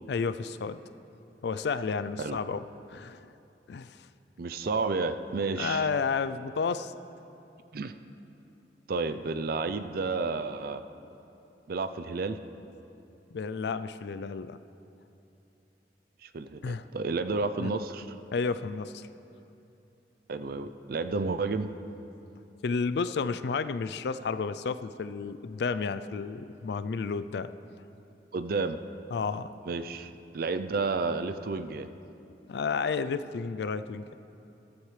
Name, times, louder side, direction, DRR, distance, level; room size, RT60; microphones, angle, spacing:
voice 1, 0.1-0.8 1.4-2.6 2.9-3.3 3.7-4.1 5.6-6.9 13.3-14.6 16.6-16.8 17.6-17.7 18.3-19.1 22.6-27.5 29.1-29.5 32.5-34.2, left 5 dB, 65° left, 13 dB, 0.4 m, -31 dB
voice 2, 4.4-5.9 7.7-7.9 8.9-10.8 11.7-12.4 16.2-18.1 20.3-21.7 28.3-28.8 29.7-31.9, right 3 dB, 55° right, 11 dB, 0.5 m, -31 dB
14.5 x 14.0 x 3.3 m, 2.8 s
head